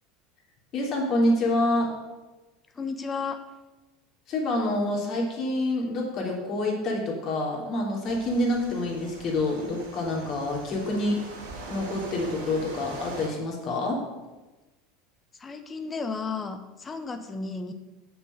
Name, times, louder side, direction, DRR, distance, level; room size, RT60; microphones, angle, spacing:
voice 1, 0.7-1.9 4.3-11.2 11.7-14.1, left 1 dB, 45° left, -1 dB, 3.1 m, -27 dB
voice 2, 2.7-3.4 15.4-17.7, left 4 dB, 25° left, 8 dB, 1.1 m, -33 dB
sound 1, 8.0-13.3, right 3 dB, 75° right, 2.3 m, -42 dB
7.0 x 6.9 x 6.5 m, 1.1 s
hypercardioid pair, 75°, 0 cm